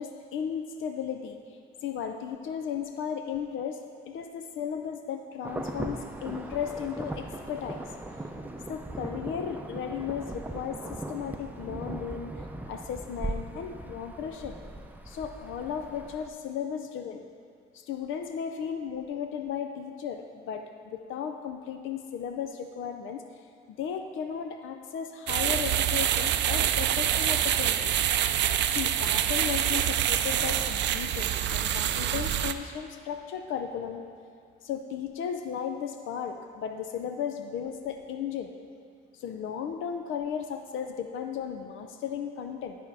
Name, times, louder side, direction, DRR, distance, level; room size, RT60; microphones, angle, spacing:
voice 1, 0.0-1.4 1.8-3.8 4.1-7.9 8.7-12.3 12.7-14.6 15.1-17.3 17.7-23.2 23.7-28.0 28.7-34.0 34.6-38.5 39.1-42.8, left 8 dB, 80° left, 6 dB, 0.5 m, -35 dB
Insect / Thunder / Rain, 5.4-16.3, right 1 dB, 10° right, 0.5 m, -39 dB
sound 1, 25.3-32.5, right 10 dB, 65° right, 0.4 m, -26 dB
12.0 x 4.4 x 4.7 m, 2.3 s
cardioid pair, 90°, 20 cm